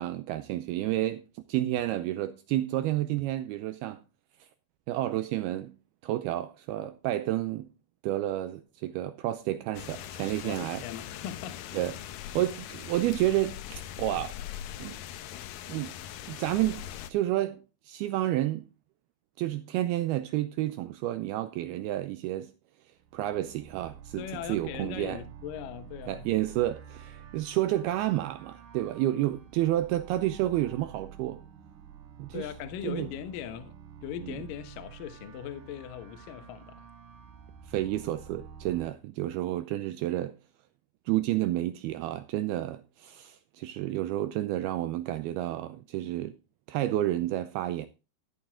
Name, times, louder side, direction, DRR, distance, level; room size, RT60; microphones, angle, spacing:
voice 1, 0.0-4.0 4.9-5.7 6.0-7.7 8.0-10.8 11.7-11.9 12.3-14.4 14.8-15.0 15.7-15.9 16.3-18.7 19.4-22.5 23.1-25.2 26.1-31.4 32.2-32.5 32.8-33.1 34.2-34.3 37.7-40.4 41.1-46.4 46.7-47.9, right 14 dB, 85° right, 2.2 m, -30 dB
sound 1, 9.7-17.1, left 11 dB, 85° left, 1.9 m, -41 dB
voice 2, 10.4-11.6 24.2-26.3 32.3-36.9, left 10 dB, 65° left, 2.3 m, -39 dB
sound 2, 23.0-38.9, right 8 dB, 60° right, 2.4 m, -49 dB
13.5 x 8.9 x 3.7 m
omnidirectional pair, 5.2 m